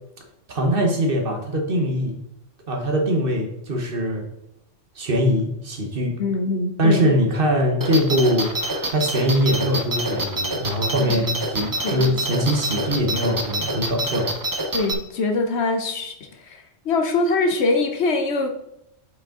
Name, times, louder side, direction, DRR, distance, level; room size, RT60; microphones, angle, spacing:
voice 1, 0.5-2.2 2.7-4.3 4.9-6.1 6.8-8.5 8.9-14.3, equal, 50° right, 2 dB, 1.2 m, -22 dB
voice 2, 6.2-7.1 11.0-11.3 11.8-12.0 14.7-18.5, left 3 dB, 60° left, 5 dB, 0.9 m, -23 dB
sound 1, 7.8-14.9, right 1 dB, 30° right, 0.4 m, -26 dB
6.0 x 5.1 x 3.7 m, 0.81 s
omnidirectional pair, 1.3 m